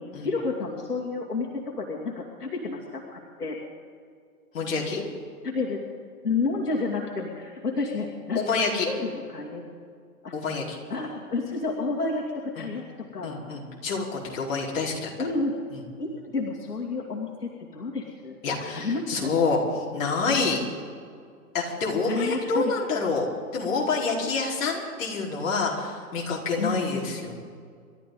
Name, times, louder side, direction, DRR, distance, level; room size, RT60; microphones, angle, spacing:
voice 1, 0.2-3.6 5.4-5.8 6.2-8.4 8.8-9.7 10.2-10.3 10.9-12.8 13.1-13.4 15.2-15.5 16.0-18.4 18.7-19.3 22.0-22.7 26.6-27.2, left 3 dB, 90° left, -1 dB, 2.6 m, -30 dB
voice 2, 4.5-5.0 8.3-8.9 10.3-10.8 12.6-12.7 13.2-15.1 15.7-15.8 18.4-19.6 19.9-20.6 21.5-23.3 23.5-27.3, left 4 dB, 55° left, -2 dB, 4.4 m, -27 dB
28.5 x 13.0 x 3.9 m, 2.1 s
hypercardioid pair, 130°, 46 cm